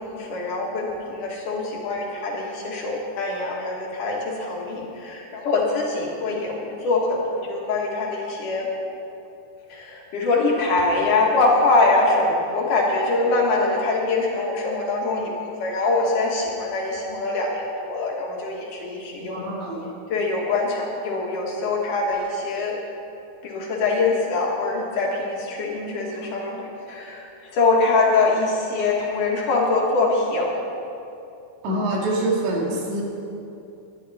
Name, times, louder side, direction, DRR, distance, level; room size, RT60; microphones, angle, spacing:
voice 1, 0.0-8.7 9.7-15.3 15.6-19.4 20.1-22.7 23.4-27.3 27.5-30.6, left 3 dB, 55° left, -2 dB, 2.6 m, -23 dB
voice 2, 19.2-19.9 31.6-33.0, right 1 dB, 75° right, -3 dB, 4.5 m, -25 dB
19.5 x 11.0 x 4.2 m, 2.7 s
omnidirectional pair, 5.3 m